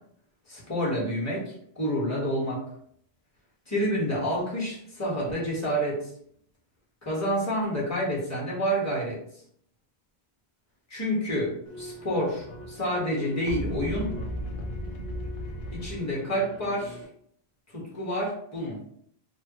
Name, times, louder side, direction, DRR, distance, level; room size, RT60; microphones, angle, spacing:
voice 1, 0.5-2.6 3.7-6.0 7.0-9.2 10.9-14.2 15.7-17.0 17.7-18.8, equal, 15° left, -5 dB, 1.0 m, -28 dB
sound 1, 11.7-17.1, equal, 70° left, 0.8 m, -36 dB
3.3 x 2.1 x 2.8 m, 0.66 s
omnidirectional pair, 1.1 m